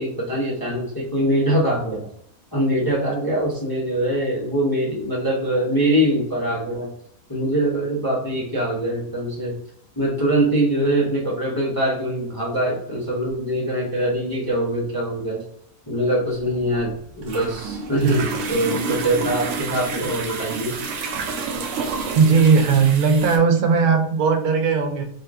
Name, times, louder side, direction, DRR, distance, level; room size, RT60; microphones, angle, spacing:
voice 1, 0.0-2.1 2.5-6.9 7.3-9.5 10.0-15.4 15.9-16.9 17.2-20.8, right 1 dB, 25° left, -5 dB, 0.5 m, -23 dB
sound 1, 16.4-23.4, right 4 dB, 65° right, 0.8 m, -29 dB
voice 2, 22.1-25.0, right 5 dB, 85° right, 6 dB, 1.1 m, -17 dB
2.7 x 2.5 x 3.3 m, 0.68 s
omnidirectional pair, 1.5 m